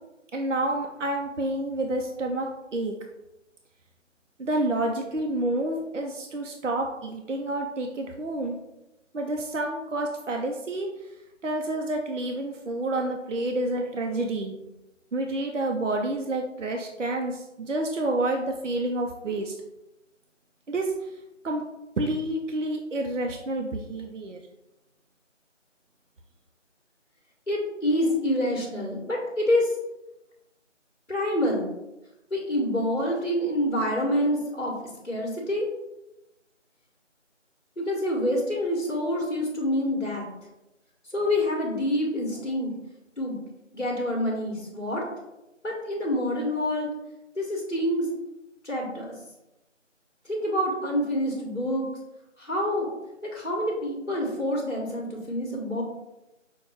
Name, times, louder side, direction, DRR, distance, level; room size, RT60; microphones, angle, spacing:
voice 1, 0.3-2.9 4.4-8.6 9.1-10.9 11.4-14.6 15.1-19.5 20.7-20.9 21.4-21.6 22.0-24.4, right 2 dB, 70° right, 2 dB, 0.6 m, -29 dB
voice 2, 27.5-29.7 31.1-31.7 32.3-34.7 35.0-35.7 37.8-40.2 41.1-42.7 43.2-43.4 43.7-45.0 45.6-46.9 47.3-48.1 48.6-49.1 50.2-51.9 52.4-52.9 53.3-55.8, left 1 dB, 60° left, -2 dB, 1.4 m, -27 dB
6.3 x 2.2 x 3.4 m, 0.94 s
figure-of-eight pair, 180°, 38 cm